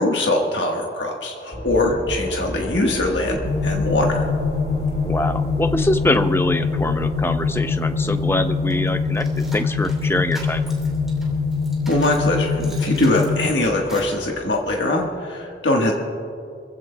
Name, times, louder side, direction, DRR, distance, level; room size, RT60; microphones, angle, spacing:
voice 1, 0.0-4.2 11.9-15.9, left 2 dB, 90° left, 0 dB, 1.4 m, -22 dB
sound 1, 1.5-15.1, equal, 50° left, 3.1 m, -34 dB
sound 2, 3.4-13.5, left 4 dB, 60° right, 1.2 m, -23 dB
voice 2, 5.1-10.6, left 1 dB, 15° left, 9 dB, 0.4 m, -24 dB
sound 3, 8.7-12.3 12.6-14.2, right 2 dB, ahead, 3.0 m, -41 dB
26.0 x 15.5 x 2.2 m, 2.6 s
head